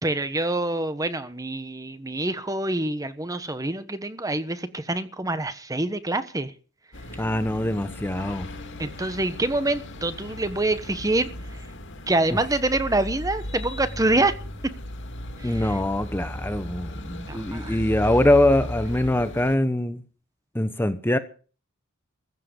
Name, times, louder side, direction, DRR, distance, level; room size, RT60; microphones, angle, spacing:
voice 1, 0.0-6.5 8.8-11.3 12.1-14.3 15.4-15.8 17.3-17.8, right 2 dB, 15° right, 1.2 m, -26 dB
sound 1, 6.9-19.6, left 1 dB, 60° left, 2.6 m, -36 dB
voice 2, 7.2-8.5 15.4-20.0 20.5-21.2, left 1 dB, 10° left, 1.0 m, -23 dB
15.5 x 7.6 x 9.9 m
head